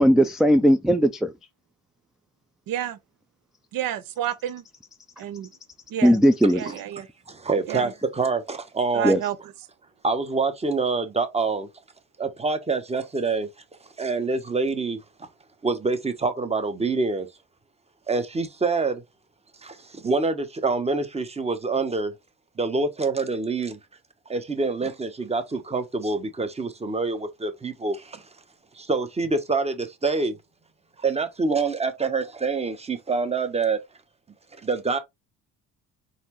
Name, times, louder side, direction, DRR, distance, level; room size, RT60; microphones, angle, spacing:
voice 1, 0.0-1.3 6.0-6.7 9.0-9.2, equal, ahead, 0.3 m, -18 dB
voice 2, 2.7-3.0 3.7-4.6 5.2-5.5 5.9-6.2 6.5-7.1 7.7-7.9 8.9-9.4, right 11 dB, 70° right, 0.7 m, -30 dB
voice 3, 7.3-9.1 10.0-11.7 12.2-13.5 14.0-15.0 15.6-17.3 18.1-19.0 19.6-22.1 22.6-23.8 24.3-28.2 28.8-30.4 31.0-33.8 34.6-35.0, right 4 dB, 15° right, 1.0 m, -26 dB
4.2 x 3.2 x 3.0 m
cardioid pair, 90°, 35 cm